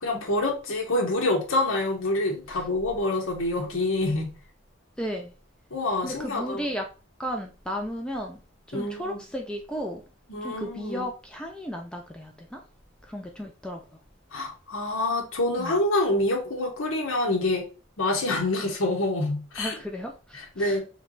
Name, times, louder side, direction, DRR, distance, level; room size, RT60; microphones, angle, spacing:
voice 1, 0.0-4.3 5.7-6.6 8.7-9.2 10.3-11.0 14.3-17.6 18.0-19.7 20.6-20.8, left 2 dB, 90° left, 1.0 m, -26 dB
voice 2, 5.0-5.3 6.0-6.8 7.2-8.4 8.7-10.0 10.4-12.6 13.0-14.0 15.6-15.7 19.6-20.8, equal, 5° left, 0.4 m, -34 dB
3.3 x 3.1 x 3.8 m
head